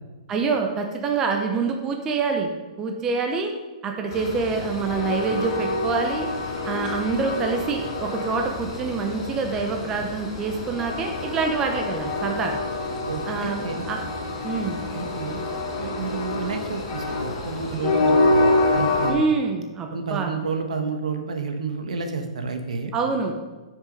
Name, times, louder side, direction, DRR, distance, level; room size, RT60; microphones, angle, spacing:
voice 1, 0.3-2.5 2.8-3.5 3.8-6.3 6.6-12.6 13.3-14.0 14.4-14.8 19.1-20.3 22.9-23.3, right 4 dB, 15° right, 3 dB, 0.6 m, -26 dB
Train, 4.1-19.1, left 2 dB, 35° left, 2.5 m, -27 dB
voice 2, 13.1-13.9 14.9-15.4 15.8-19.2 19.9-22.9, right 5 dB, 75° right, 5 dB, 1.4 m, -30 dB
9.2 x 6.3 x 5.3 m, 1.3 s
hypercardioid pair, 170°, 4 cm